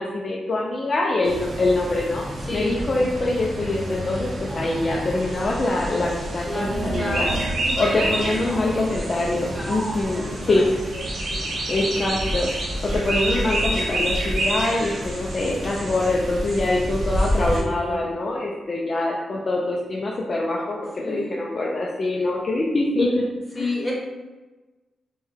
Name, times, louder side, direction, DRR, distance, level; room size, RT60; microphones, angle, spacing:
voice 1, 0.0-2.2 2.5-7.3 7.8-10.7 11.7-12.5 12.9-23.2 23.5-23.7, left 2 dB, 35° left, -3 dB, 0.4 m, -24 dB
sound 1, 1.2-17.6, right 1 dB, 60° right, 0.8 m, -28 dB
sound 2, 4.5-10.0, right 2 dB, 20° right, 0.6 m, -35 dB
voice 2, 6.4-7.3 7.6-9.7 10.0-11.0 11.3-11.6 17.3-18.0 21.0-21.4 23.5-23.9, left 1 dB, 15° left, -4 dB, 0.9 m, -32 dB
4.5 x 2.2 x 3.4 m, 1.2 s
wide cardioid pair, 155°, 0 cm